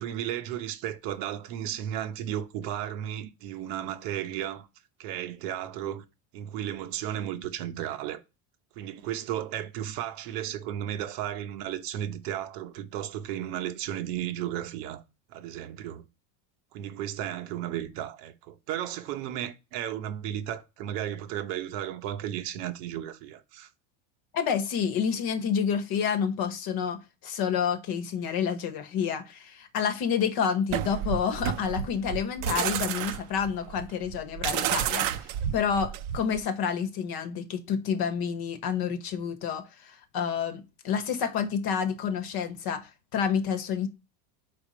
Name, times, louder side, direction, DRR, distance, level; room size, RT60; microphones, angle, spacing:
voice 1, 0.0-4.7 5.0-6.0 6.3-8.2 8.8-15.0 15.3-16.1 16.7-23.7, right 11 dB, 80° right, 1.0 m, -34 dB
voice 2, 24.3-35.2 35.5-43.9, left 7 dB, 50° left, 1.0 m, -29 dB
sound 1, 30.7-36.4, right 11 dB, 60° right, 0.7 m, -30 dB
5.0 x 4.2 x 5.0 m
cardioid pair, 145°, 48 cm